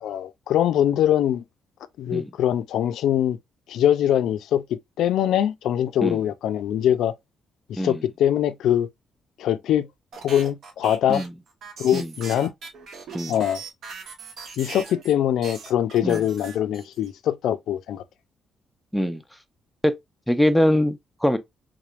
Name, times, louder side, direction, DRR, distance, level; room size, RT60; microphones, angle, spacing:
voice 1, 0.0-1.4 2.0-3.4 3.7-7.1 7.7-8.9 9.4-9.9 10.2-11.3 11.8-12.5 13.3-13.6 14.6-18.0, left 10 dB, 85° left, 0.4 m, -23 dB
sound 1, 10.1-15.1 15.4-17.1, right 4 dB, 65° right, 1.2 m, -39 dB
voice 2, 20.3-21.4, equal, ahead, 0.5 m, -22 dB
3.7 x 3.2 x 2.4 m
cardioid pair, 135°, 0 cm